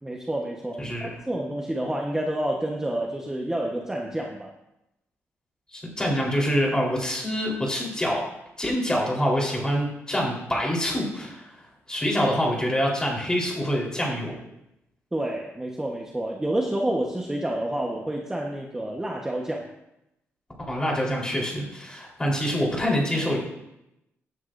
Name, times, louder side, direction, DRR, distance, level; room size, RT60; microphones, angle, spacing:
voice 1, 0.0-4.5 15.1-19.6, right 1 dB, 10° right, -1 dB, 1.2 m, -29 dB
voice 2, 0.8-1.1 5.7-8.2 8.6-11.5 11.9-14.4 20.6-23.4, equal, 15° left, -2 dB, 4.0 m, -25 dB
16.0 x 9.6 x 2.6 m, 0.86 s
cardioid pair, 115°, 5 cm